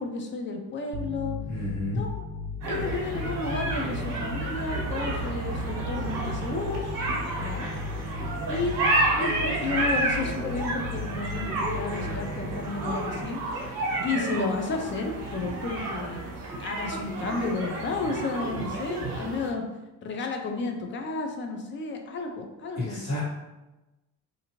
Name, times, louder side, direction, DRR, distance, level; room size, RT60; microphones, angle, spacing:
voice 1, 0.0-1.3 1.9-2.3 2.7-6.8 7.4-7.7 8.5-8.8 9.1-13.4 13.7-16.3 16.6-19.6 20.0-23.0, left 3 dB, 35° left, 3 dB, 0.4 m, -32 dB
sound 1, 0.9-14.1, left 4 dB, 50° right, 0.4 m, -37 dB
voice 2, 1.5-2.0 22.9-23.2, left 1 dB, 50° left, -9 dB, 1.2 m, -31 dB
sound 2, 2.6-19.5, right 2 dB, 70° right, 0.9 m, -31 dB
2.6 x 2.6 x 2.8 m, 1.0 s
cardioid pair, 145°, 36 cm